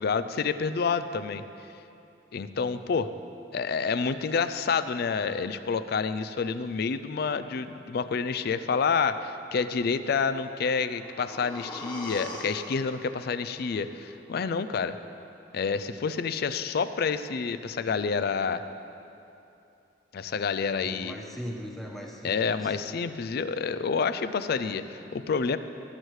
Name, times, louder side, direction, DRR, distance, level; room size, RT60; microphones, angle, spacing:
voice 1, 0.0-1.4 2.3-3.1 3.5-15.0 15.5-18.6 20.1-21.1 22.2-25.6, left 5 dB, 55° left, 11 dB, 0.4 m, -28 dB
sound 1, 10.5-14.5 14.9-15.0, left 1 dB, 25° left, 1.7 m, -43 dB
voice 2, 20.8-22.7 25.0-25.1, equal, ahead, -2 dB, 1.1 m, -39 dB
17.0 x 8.1 x 3.2 m, 2.8 s
head